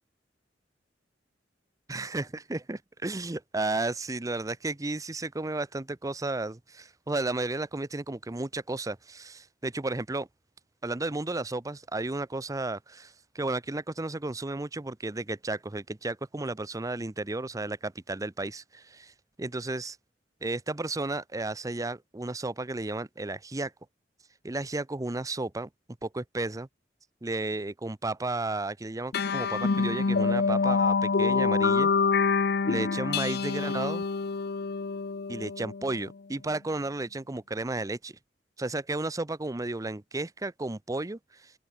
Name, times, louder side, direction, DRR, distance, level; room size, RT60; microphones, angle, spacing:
voice 1, 1.9-10.3 10.8-19.1 19.4-20.0 20.4-23.7 24.4-25.7 26.0-26.7 27.2-31.9 32.7-34.0 35.3-38.2 38.6-41.5, right 2 dB, 20° right, 0.6 m, -33 dB
sound 1, 29.1-36.0, left 4 dB, 60° left, 0.7 m, -26 dB
open air
head